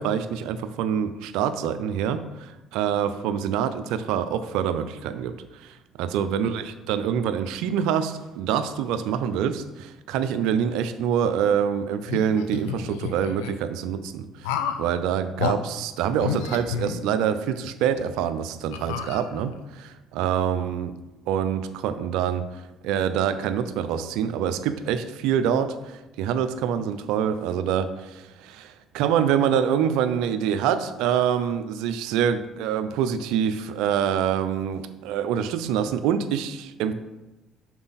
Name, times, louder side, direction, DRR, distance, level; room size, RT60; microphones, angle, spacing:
voice 1, 0.0-2.2 2.7-5.3 6.0-9.6 10.1-14.2 14.8-19.5 20.2-20.9 21.3-22.4 22.8-25.7 26.2-27.9 28.9-36.9, right 8 dB, 80° right, 11 dB, 0.4 m, -25 dB
sound 1, 12.0-13.5 14.4-14.9 15.4-15.6 16.2-17.4 17.9-18.0 18.7-19.6, left 7 dB, 90° left, 0.4 m, -31 dB
5.9 x 4.3 x 4.0 m, 1.0 s
supercardioid pair, 70°, 0 cm